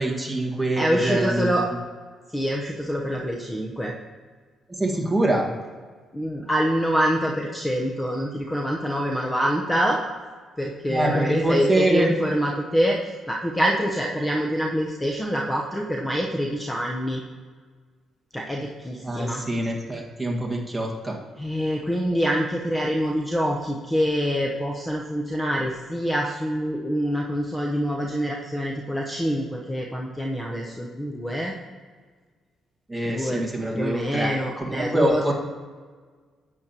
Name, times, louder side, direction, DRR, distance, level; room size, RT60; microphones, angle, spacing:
voice 1, 0.0-1.5 4.7-5.5 10.9-12.1 19.0-21.2 32.9-35.3, right 1 dB, 5° right, -1 dB, 1.7 m, -25 dB
voice 2, 0.7-1.7 2.3-3.9 6.1-10.0 10.6-17.2 18.3-19.4 21.4-31.5 33.1-33.4 33.7-35.3, equal, 15° left, -1 dB, 0.9 m, -25 dB
10.5 x 8.4 x 2.9 m, 1.5 s
cardioid pair, 90°, 0 cm